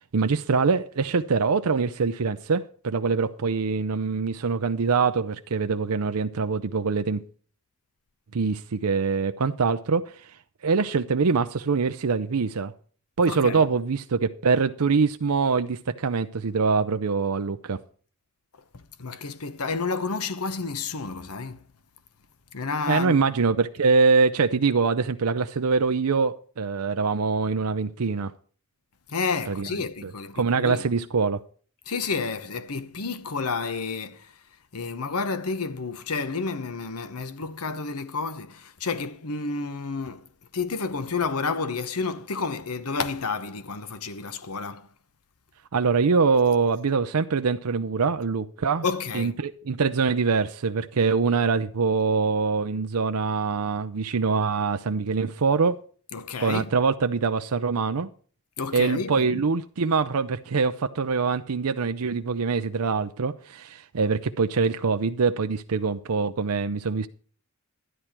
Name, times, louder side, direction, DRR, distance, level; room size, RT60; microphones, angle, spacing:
voice 1, 0.0-7.2 8.3-10.3 10.6-12.7 13.2-17.8 22.9-28.3 29.5-29.7 30.0-31.4 45.7-48.8 49.1-55.8 56.4-58.1 58.7-67.1, right 5 dB, 90° right, 0.6 m, -24 dB
voice 2, 13.3-13.6 19.0-21.6 22.5-23.3 29.1-30.8 31.9-34.3 34.7-40.2 40.5-44.9 48.8-49.3 56.1-56.6 58.6-59.4, left 4 dB, 90° left, 1.1 m, -30 dB
12.5 x 10.0 x 4.4 m
head